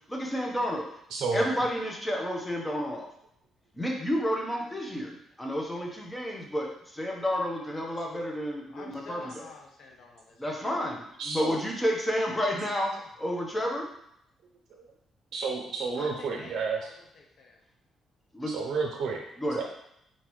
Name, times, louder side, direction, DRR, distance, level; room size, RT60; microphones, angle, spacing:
voice 1, 0.1-1.0 1.3-3.1 3.7-9.4 10.4-13.9 18.3-18.5 19.4-19.6, equal, 10° left, 0 dB, 1.1 m, -30 dB
voice 2, 1.1-1.5 11.2-11.6 14.7-14.8 15.3-16.8 18.5-19.2 19.5-19.6, right 4 dB, 65° right, 1 dB, 0.6 m, -31 dB
voice 3, 8.7-10.8 15.9-17.6, left 4 dB, 65° left, 1 dB, 0.7 m, -48 dB
4.4 x 3.8 x 3.1 m, 0.75 s
cardioid pair, 90°, 0 cm